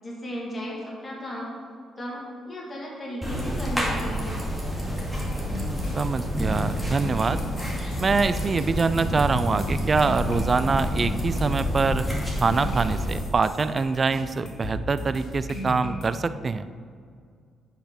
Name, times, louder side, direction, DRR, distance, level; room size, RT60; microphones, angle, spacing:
voice 1, 0.0-1.6 2.0-4.4, equal, 25° left, -4 dB, 2.5 m, -35 dB
sound 1, 3.2-13.2, equal, ahead, 2.3 m, -29 dB
sound 2, 5.1-16.0, left 1 dB, 70° left, 2.6 m, -35 dB
voice 2, 5.9-7.4 8.0-12.0 12.4-16.7, right 4 dB, 35° right, 13 dB, 0.4 m, -24 dB
8.9 x 5.7 x 5.9 m, 2.1 s
cardioid pair, 90°, 0 cm